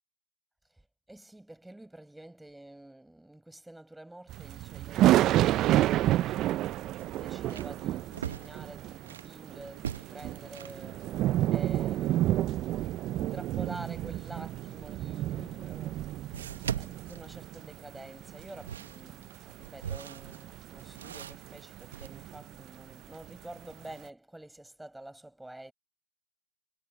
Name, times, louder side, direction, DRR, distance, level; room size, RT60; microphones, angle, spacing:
voice 1, 1.1-25.7, right 1 dB, 5° right, 5.7 m, -48 dB
sound 1, 4.3-22.9 23.2-23.4 23.9-24.0, right 14 dB, 25° right, 0.7 m, -30 dB
sound 2, 7.0-9.3 9.7-10.9 15.1-15.2 16.3-17.9 18.4-22.1, right 9 dB, 65° right, 0.9 m, -41 dB
hypercardioid pair, 135°, 0 cm